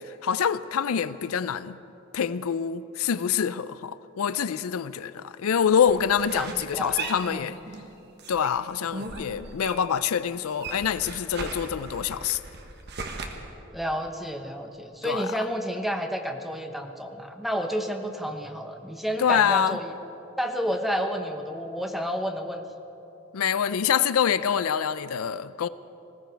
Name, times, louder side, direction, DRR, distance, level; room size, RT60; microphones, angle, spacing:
voice 1, 0.2-1.8 2.1-7.6 8.3-12.4 15.0-15.3 19.2-19.8 23.3-25.7, left 8 dB, 90° left, 0.4 m, -25 dB
sound 1, 5.8-7.9 8.2-10.0 10.3-13.3, right 3 dB, 50° right, 1.4 m, -38 dB
voice 2, 6.3-7.0 7.3-7.5 13.7-19.9 20.4-22.6, equal, ahead, 0.9 m, -30 dB
20.5 x 15.5 x 4.6 m
head